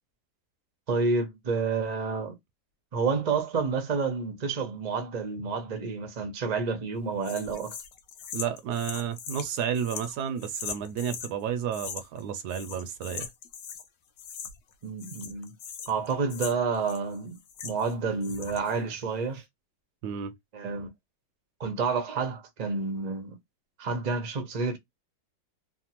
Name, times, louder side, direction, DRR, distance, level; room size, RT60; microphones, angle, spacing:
voice 1, 0.9-2.3 2.9-7.8 14.8-15.5 15.9-17.4 17.6-19.4 20.5-20.9 21.6-23.3 23.8-24.8, right 4 dB, 50° right, 0.5 m, -29 dB
sound 1, 7.2-11.3 11.7-12.2 12.5-13.9 14.2-14.7 15.0-17.9 18.2-18.8, left 7 dB, 70° left, 1.1 m, -40 dB
voice 2, 8.3-13.3 20.0-20.3, right 8 dB, 75° right, 1.1 m, -31 dB
3.3 x 2.1 x 2.8 m
omnidirectional pair, 1.9 m